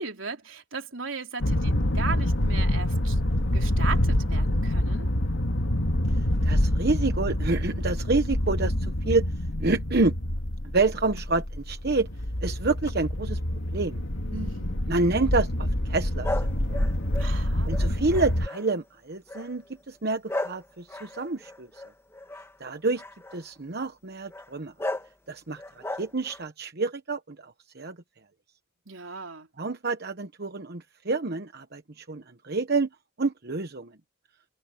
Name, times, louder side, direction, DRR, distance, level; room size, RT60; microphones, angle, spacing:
voice 1, 0.0-3.2 3.5-5.1 14.3-14.9 17.1-17.7 28.9-29.5, right 4 dB, 75° right, 3.9 m, -37 dB
sound 1, 1.4-18.5, left 1 dB, 75° left, 2.2 m, -26 dB
voice 2, 6.4-9.3 9.6-10.1 10.7-12.1 12.4-13.4 13.7-14.0 14.9-16.8 17.6-21.8 22.6-23.0 23.3-24.7 25.3-28.0 29.6-32.9 33.2-33.9, right 3 dB, 55° right, 1.1 m, -28 dB
sound 2, 16.2-18.8 19.3-19.6 20.3-22.5 23.0-23.4 24.3-24.5 24.8-25.1 25.6-26.5, left 1 dB, 15° left, 1.8 m, -35 dB
head